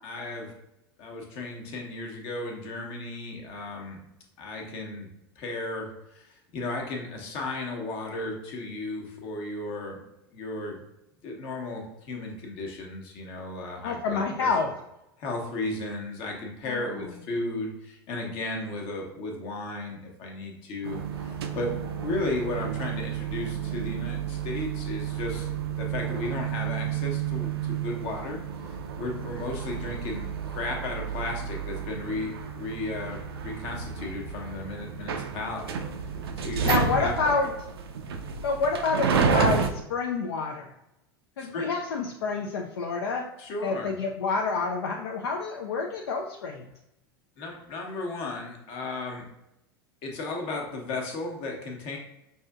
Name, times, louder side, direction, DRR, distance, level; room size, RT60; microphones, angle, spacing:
voice 1, 0.0-0.5 1.0-4.0 4.4-5.1 5.4-10.0 10.3-10.8 11.2-14.5 15.2-21.7 22.0-25.5 25.8-35.8 36.4-37.5 41.4-41.7 43.4-44.0 47.4-49.2 50.0-52.0, left 2 dB, 50° left, 1 dB, 1.0 m, -35 dB
voice 2, 13.8-14.7 16.7-17.0 36.6-37.5 38.4-40.7 41.4-43.2 43.6-46.7, left 4 dB, 75° left, 1 dB, 0.4 m, -28 dB
sound 1, 20.8-39.7, right 7 dB, 75° right, 0.4 m, -31 dB
5.2 x 2.7 x 2.3 m, 0.85 s
figure-of-eight pair, 85°, 13 cm